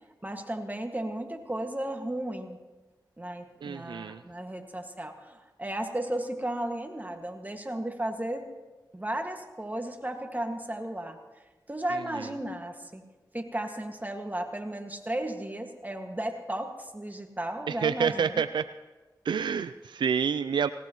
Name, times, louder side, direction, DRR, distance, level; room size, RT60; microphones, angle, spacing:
voice 1, 0.2-2.6 3.2-8.5 8.9-11.2 11.7-13.0 13.3-18.4, right 1 dB, 20° right, 4 dB, 1.9 m, -34 dB
voice 2, 3.6-4.2 17.7-18.7 19.3-20.7, right 7 dB, 85° right, 12 dB, 0.4 m, -28 dB
18.5 x 18.0 x 3.1 m, 1.2 s
cardioid pair, 40°, 8 cm